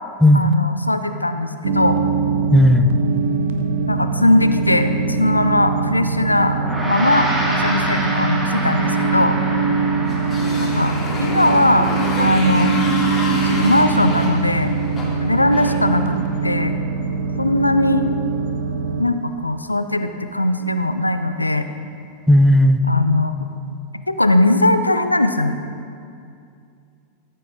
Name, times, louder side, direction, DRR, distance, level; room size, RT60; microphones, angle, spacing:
voice 1, 0.3-2.0 3.9-4.9 5.2-6.6 6.9-9.4 10.6-10.9 11.2-11.9 12.2-12.8 13.4-14.7 15.2-16.7 17.4-18.0 19.0-21.7 22.9-23.3 24.1-25.6, left 1 dB, 85° left, 9 dB, 0.4 m, -19 dB
sound 1, 1.6-19.0, right 5 dB, 60° right, 0.8 m, -22 dB
voice 2, 2.5-2.9 22.3-22.8, left 1 dB, ahead, 8 dB, 0.5 m, -13 dB
Gong, 6.5-16.1, right 1 dB, 15° right, 1.9 m, -29 dB
Motorcycle, 10.0-16.5, left 2 dB, 25° left, 2.3 m, -29 dB
14.0 x 7.5 x 3.9 m, 2.4 s
figure-of-eight pair, 90°, 0 cm